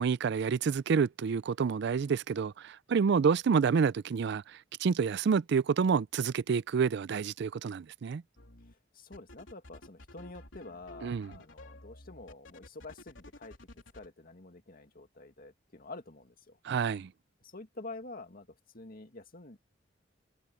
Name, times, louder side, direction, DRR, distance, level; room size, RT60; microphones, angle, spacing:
voice 1, 0.0-8.2 11.0-11.3 16.6-17.1, right 6 dB, 60° right, 0.4 m, -28 dB
sound 1, 8.4-8.7 9.1-14.1, left 1 dB, 80° left, 3.8 m, -52 dB
voice 2, 8.7-13.6 13.9-16.6 17.4-18.5 18.7-19.8, left 3 dB, 50° left, 2.2 m, -48 dB
head